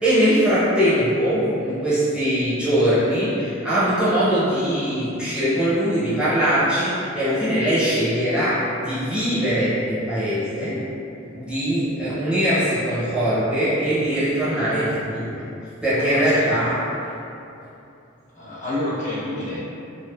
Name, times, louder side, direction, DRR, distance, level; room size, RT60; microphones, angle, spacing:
voice 1, 0.0-10.8 11.3-15.4 15.8-16.8, equal, 5° right, -12 dB, 0.7 m, -21 dB
voice 2, 16.0-16.7 18.3-19.6, left 1 dB, 35° left, -9 dB, 0.5 m, -29 dB
2.6 x 2.4 x 2.2 m, 2.8 s
head